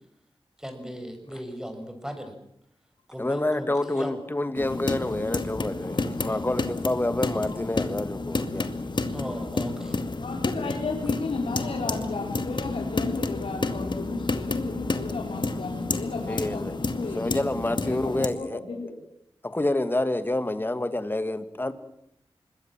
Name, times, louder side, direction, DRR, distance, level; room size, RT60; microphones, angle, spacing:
voice 1, 0.6-2.3 3.1-4.2 5.0-5.2 9.1-10.0, equal, 5° right, 6.7 m, -37 dB
voice 2, 3.2-8.7 10.6-10.7 11.5-11.6 16.3-16.7 17.1-18.6 19.4-21.7, left 1 dB, 20° left, 2.2 m, -28 dB
sound 1, 4.6-18.3, left 3 dB, 50° left, 2.2 m, -30 dB
voice 3, 10.2-19.0, left 3 dB, 80° left, 4.5 m, -34 dB
25.5 x 22.0 x 7.6 m
wide cardioid pair, 65°, 10 cm